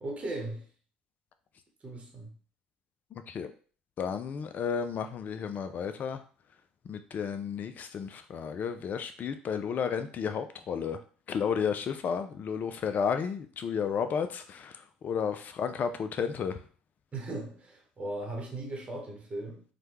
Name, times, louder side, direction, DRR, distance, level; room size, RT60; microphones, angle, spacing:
voice 1, 0.0-0.7 1.8-2.4 17.1-19.6, right 2 dB, 30° right, 1.0 m, -38 dB
voice 2, 4.0-6.2 6.9-11.0 11.3-16.6, left 6 dB, 45° left, 0.3 m, -32 dB
3.2 x 2.2 x 2.9 m
hypercardioid pair, 60°, 4 cm